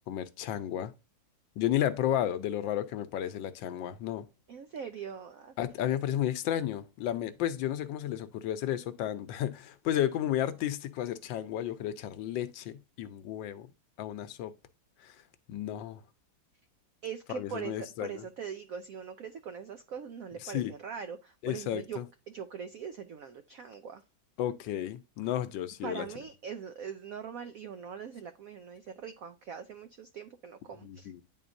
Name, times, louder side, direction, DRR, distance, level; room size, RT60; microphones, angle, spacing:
voice 1, 0.1-0.9 1.6-4.3 5.6-13.7 14.0-14.5 15.0-15.2 15.5-16.0 17.3-18.2 20.4-20.7 21.4-22.0 24.4-26.1 30.8-31.2, left 11 dB, 75° left, 1.3 m, -32 dB
voice 2, 4.5-5.5 17.0-22.0 22.3-24.0 25.8-31.2, right 7 dB, 90° right, 0.7 m, -42 dB
10.0 x 3.8 x 2.6 m
omnidirectional pair, 2.2 m